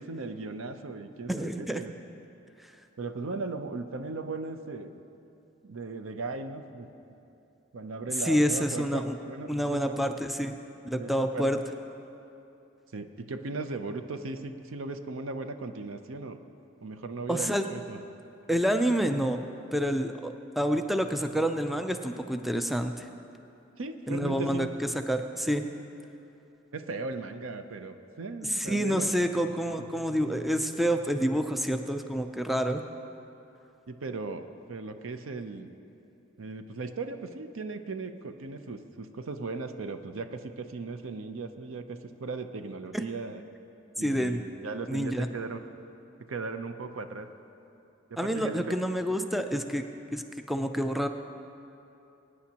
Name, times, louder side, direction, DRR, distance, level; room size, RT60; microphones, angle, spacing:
voice 1, 0.0-1.9 3.0-5.0 5.6-6.9 7.7-10.0 10.8-11.5 12.9-16.4 16.8-18.0 23.8-24.7 26.7-29.1 29.8-29.9 30.2-30.4 33.9-35.7 36.4-43.4 44.0-45.6 46.3-47.3 48.1-48.8, right 3 dB, 90° right, 8 dB, 0.6 m, -37 dB
voice 2, 1.3-1.8 8.3-9.1 9.5-10.6 10.8-11.6 17.3-17.6 18.5-19.4 19.7-23.0 24.1-24.7 25.1-25.6 28.5-32.8 42.9-43.0 44.0-44.4 44.9-45.3 48.2-49.8 50.1-50.2 50.5-51.1, equal, ahead, 6 dB, 0.4 m, -28 dB
21.5 x 9.6 x 2.9 m, 2.8 s
head